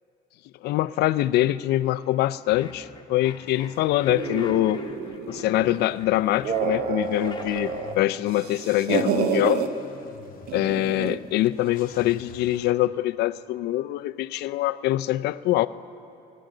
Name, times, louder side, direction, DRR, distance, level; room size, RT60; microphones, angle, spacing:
voice 1, 0.6-4.8 5.3-9.6 10.5-15.7, left 15 dB, 75° left, 14 dB, 0.4 m, -24 dB
sound 1, 2.5-8.0, left 4 dB, 25° left, 1.0 m, -44 dB
sound 2, 4.1-5.8 6.3-7.9 8.3-9.7 10.5-11.3, right 6 dB, 70° right, 1.0 m, -29 dB
Car / Engine starting / Idling, 7.0-12.7, left 7 dB, 55° left, 0.8 m, -47 dB
28.5 x 10.0 x 3.9 m, 2.8 s
cardioid pair, 110°, 17 cm